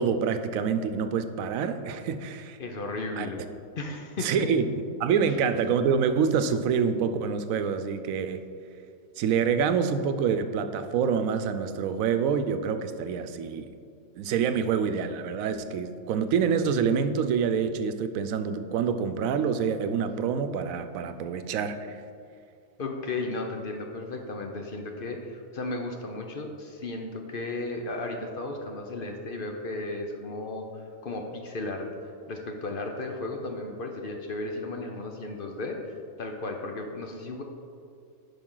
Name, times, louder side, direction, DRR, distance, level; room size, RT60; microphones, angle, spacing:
voice 1, 0.0-2.6 3.2-3.3 4.2-8.5 9.2-13.7 14.2-22.0, right 6 dB, 85° right, 9 dB, 1.0 m, -26 dB
voice 2, 2.6-3.4 3.8-4.5 5.2-5.4 22.8-30.7 31.0-31.9 32.3-37.4, left 2 dB, 50° left, 3 dB, 0.7 m, -34 dB
10.5 x 5.4 x 3.8 m, 2.4 s
omnidirectional pair, 1.4 m